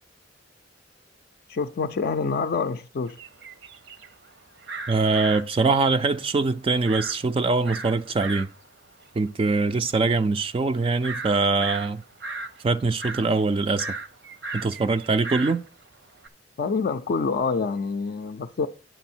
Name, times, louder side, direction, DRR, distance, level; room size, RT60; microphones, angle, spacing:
voice 1, 1.5-3.2 16.6-18.7, left 4 dB, 55° left, 0.4 m, -26 dB
sound 1, 3.1-16.3, right 3 dB, 70° right, 0.8 m, -37 dB
voice 2, 4.9-8.5 9.2-12.0 12.6-13.9 14.5-15.6, right 3 dB, 30° right, 0.3 m, -23 dB
9.0 x 6.2 x 4.3 m
head